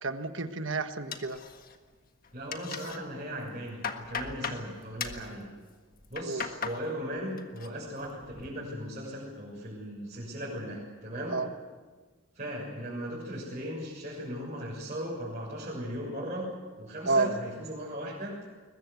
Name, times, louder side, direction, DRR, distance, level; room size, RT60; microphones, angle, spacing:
voice 1, 0.0-1.4 6.3-6.4 11.3-11.5 17.0-17.3, right 3 dB, 60° right, 8 dB, 1.4 m, -29 dB
sound 1, 1.1-1.9 2.2-3.0 3.4-4.6 5.0-5.3 5.9-6.8 7.2-7.7 8.0-8.5, left 6 dB, 40° left, 1.6 m, -37 dB
voice 2, 2.3-5.5 6.1-11.4 12.3-16.5 16.8-18.4, equal, 35° right, -6 dB, 6.7 m, -37 dB
22.0 x 21.5 x 8.3 m, 1.4 s
head